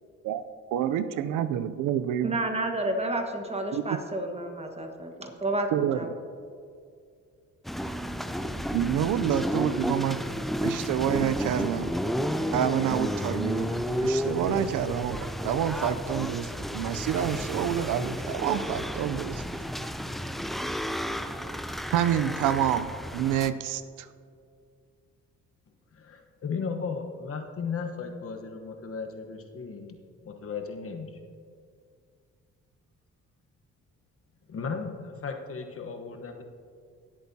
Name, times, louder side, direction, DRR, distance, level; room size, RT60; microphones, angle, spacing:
voice 1, 0.7-2.3 3.7-4.0 5.7-6.0 8.7-10.2 10.6-11.9 12.5-19.4 21.9-24.1, right 10 dB, 85° right, 12 dB, 0.5 m, -28 dB
voice 2, 2.2-6.1, right 2 dB, 20° right, 4 dB, 1.4 m, -30 dB
sound 1, 7.7-23.5, equal, ahead, 0.4 m, -32 dB
voice 3, 25.9-30.0 30.2-31.2 34.5-36.4, left 5 dB, 50° left, 4 dB, 1.1 m, -35 dB
17.5 x 8.2 x 2.8 m, 2.3 s
cardioid pair, 90°, 30 cm